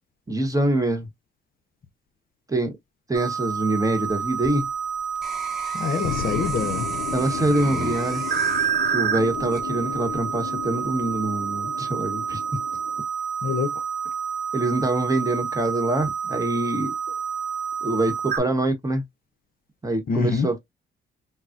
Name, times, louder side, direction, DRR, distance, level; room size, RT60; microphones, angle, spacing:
voice 1, 0.3-1.1 2.5-2.7 3.1-4.7 7.1-8.2 8.9-12.4 14.5-16.9 17.8-19.0 19.8-20.6, right 1 dB, 15° right, 1.0 m, -24 dB
sound 1, 3.1-18.4, right 7 dB, 60° right, 1.0 m, -29 dB
sound 2, 4.1-10.3 10.8-11.3, equal, ahead, 1.4 m, -41 dB
voice 2, 5.7-6.9 7.6-7.9 13.4-13.7 20.1-20.5, left 5 dB, 45° left, 0.6 m, -26 dB
sound 3, 6.0-13.0, left 12 dB, 90° left, 0.4 m, -35 dB
3.8 x 2.0 x 2.4 m
cardioid pair, 90°, 20 cm